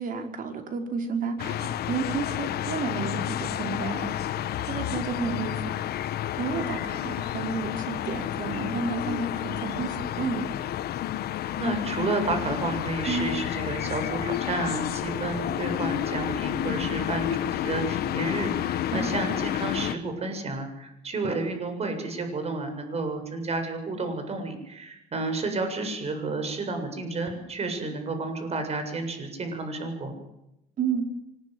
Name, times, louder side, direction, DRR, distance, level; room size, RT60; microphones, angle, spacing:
voice 1, 0.0-4.1 4.7-5.6 6.4-10.5 13.1-13.3 18.9-19.1 30.8-31.0, right 5 dB, 55° right, 5 dB, 5.2 m, -31 dB
sound 1, 1.4-19.9, left 12 dB, 65° left, 1.4 m, -30 dB
voice 2, 11.6-30.2, right 3 dB, 40° right, 7 dB, 7.5 m, -31 dB
24.5 x 21.5 x 8.1 m, 0.86 s
cardioid pair, 110°, 17 cm